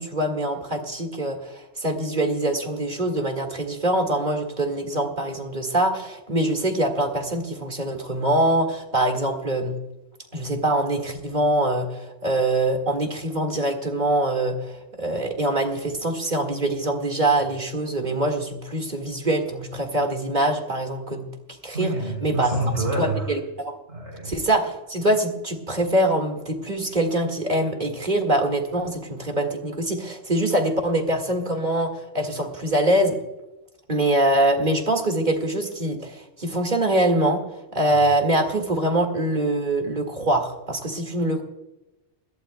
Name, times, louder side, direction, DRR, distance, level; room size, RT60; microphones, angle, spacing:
voice 1, 0.0-9.7 10.3-21.3 21.6-21.9 22.2-22.5 23.0-23.7 24.2-33.2 33.9-37.4 37.7-41.4, right 1 dB, 40° right, 4 dB, 2.1 m, -24 dB
voice 2, 21.7-23.3 23.9-24.3, right 2 dB, 75° right, -2 dB, 3.8 m, -27 dB
21.0 x 15.5 x 2.2 m, 0.95 s
omnidirectional pair, 1.2 m